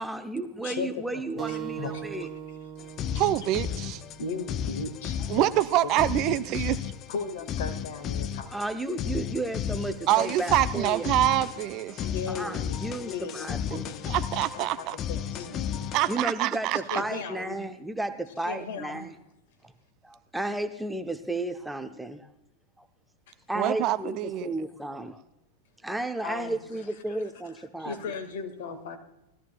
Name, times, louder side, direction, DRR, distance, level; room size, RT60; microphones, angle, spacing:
voice 1, 0.0-2.3 8.5-11.1 12.3-13.9 16.1-19.1 20.0-22.3 23.5-25.2 25.8-28.0, right 2 dB, 5° right, 7 dB, 0.8 m, -33 dB
voice 2, 0.6-2.3 3.1-3.2 4.2-5.9 6.3-6.7 7.1-8.5 12.0-16.0 16.9-17.6 18.4-19.0 26.2-26.6 27.8-29.0, left 5 dB, 55° left, 5 dB, 1.8 m, -37 dB
sound 1, 1.4-6.5, right 9 dB, 20° right, 1.3 m, -41 dB
sound 2, 2.8-16.3, left 9 dB, 30° left, 0.5 m, -34 dB
voice 3, 3.2-4.0 5.3-6.8 10.1-12.1 14.1-15.0 15.9-17.0 23.6-24.5, right 15 dB, 40° right, 13 dB, 0.5 m, -25 dB
19.5 x 14.0 x 2.3 m, 0.89 s
figure-of-eight pair, 90°, 0 cm